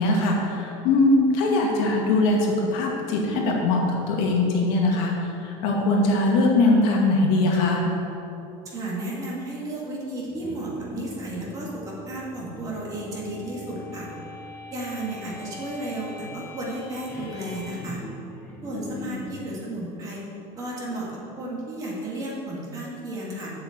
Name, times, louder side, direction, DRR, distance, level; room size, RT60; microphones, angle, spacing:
voice 1, 0.0-5.1 5.4-7.8, left 2 dB, 60° left, -1 dB, 2.1 m, -21 dB
voice 2, 8.7-14.1 14.7-18.0 18.6-20.2 20.6-21.1 21.4-23.5, right 1 dB, 25° right, -5 dB, 2.3 m, -33 dB
sound 1, 10.2-19.4, left 1 dB, 15° left, 1.5 m, -41 dB
8.3 x 6.9 x 8.1 m, 2.9 s
cardioid pair, 180°, 15 cm